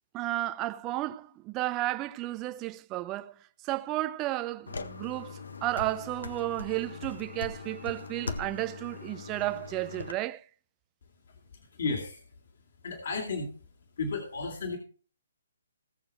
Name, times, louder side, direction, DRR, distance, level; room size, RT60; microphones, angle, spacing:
voice 1, 0.1-3.3 3.6-10.4, right 16 dB, 25° right, 0.8 m, -33 dB
sound 1, 4.7-10.1, left 4 dB, 75° left, 1.6 m, -40 dB
voice 2, 11.7-12.2 12.8-13.5 14.0-14.8, left 4 dB, 60° left, 3.2 m, -33 dB
18.0 x 7.0 x 4.5 m
figure-of-eight pair, 135°, 0 cm